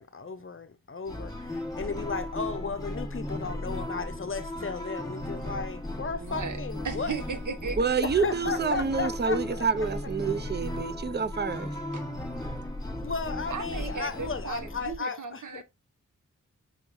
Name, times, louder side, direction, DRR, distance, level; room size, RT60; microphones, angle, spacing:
voice 1, 0.0-7.2 8.1-9.7 13.0-15.6, left 4 dB, 40° left, 0.6 m, -35 dB
sound 1, 1.1-15.0, left 1 dB, 10° left, 1.4 m, -36 dB
voice 2, 6.2-7.8 11.9-12.1 13.5-15.6, right 5 dB, 70° right, 1.0 m, -36 dB
voice 3, 7.8-11.7, right 5 dB, 35° right, 0.5 m, -28 dB
5.6 x 3.1 x 2.6 m
wide cardioid pair, 55°, 32 cm